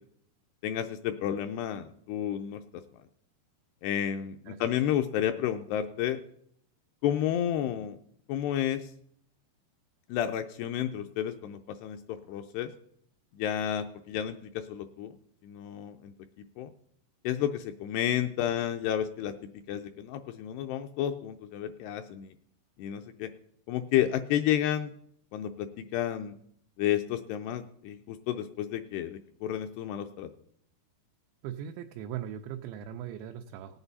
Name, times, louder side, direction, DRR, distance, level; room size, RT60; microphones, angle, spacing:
voice 1, 0.6-2.6 3.8-6.2 7.0-8.0 8.3-8.9 10.1-12.7 13.3-15.2 15.4-16.1 16.6-16.7 17.2-22.3 22.8-23.3 23.7-24.9 25.3-26.3 26.8-30.3, left 10 dB, 80° left, 7 dB, 2.5 m, -31 dB
voice 2, 31.4-33.8, right 10 dB, 90° right, 4 dB, 2.9 m, -39 dB
18.5 x 8.0 x 4.1 m, 0.68 s
omnidirectional pair, 5.0 m